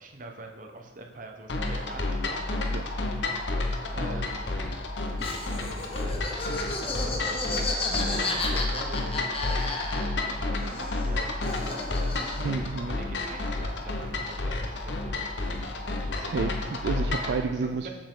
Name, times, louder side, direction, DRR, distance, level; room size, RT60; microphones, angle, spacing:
voice 1, 0.0-2.4 3.5-4.3 5.5-12.2 12.8-15.7 16.0-16.1 16.9-17.9, right 2 dB, 45° right, 3 dB, 0.9 m, -44 dB
sound 1, 1.5-17.4, left 2 dB, 75° left, 0.9 m, -30 dB
Laughter, 5.2-10.4 10.6-12.6, left 3 dB, 30° left, 0.9 m, -33 dB
voice 2, 12.4-13.0 16.2-17.9, right 4 dB, 65° right, 6 dB, 0.3 m, -30 dB
7.3 x 7.2 x 3.8 m, 1.1 s
head